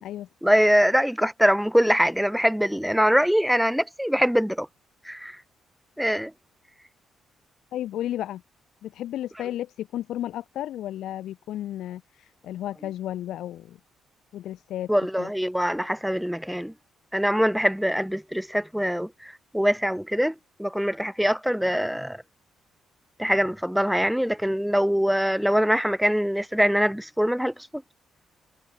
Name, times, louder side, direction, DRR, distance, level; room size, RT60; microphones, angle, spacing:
voice 1, 0.4-4.7 5.1-5.4 6.0-6.3 14.9-16.7 17.1-20.3 20.6-22.2 23.2-27.8, equal, ahead, 0.6 m, -23 dB
voice 2, 7.7-8.4 8.8-13.8 14.3-14.9 15.2-15.3, left 12 dB, 80° left, 0.6 m, -33 dB
cardioid pair, 90°, 0 cm